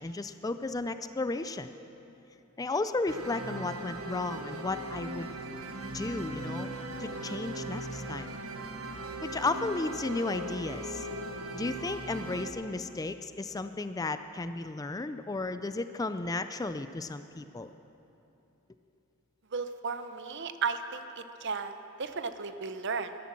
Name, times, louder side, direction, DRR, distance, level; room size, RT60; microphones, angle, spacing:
voice 1, 0.0-1.7 2.6-5.3 5.9-6.7 7.0-8.4 9.2-11.1 11.5-17.7, left 3 dB, 15° left, 11 dB, 0.3 m, -34 dB
sound 1, 3.1-12.5, right 1 dB, 90° right, 1.2 m, -39 dB
voice 2, 19.5-23.2, right 5 dB, 55° right, 10 dB, 0.7 m, -35 dB
13.5 x 12.0 x 7.4 m, 2.9 s
head